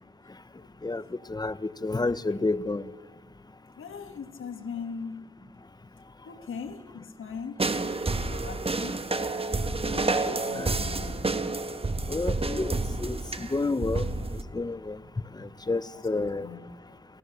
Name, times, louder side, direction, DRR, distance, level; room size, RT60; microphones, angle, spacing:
voice 1, 0.8-2.9 9.9-10.8 12.1-15.0 15.3-16.5, left 3 dB, 20° left, 0.7 m, -31 dB
voice 2, 3.8-5.3 6.3-7.6 8.0-9.0 9.8-11.4 15.9-16.7, left 5 dB, 75° left, 1.7 m, -40 dB
sound 1, 7.6-14.4, right 3 dB, 30° right, 1.3 m, -29 dB
27.0 x 16.5 x 6.7 m
wide cardioid pair, 95°, 21 cm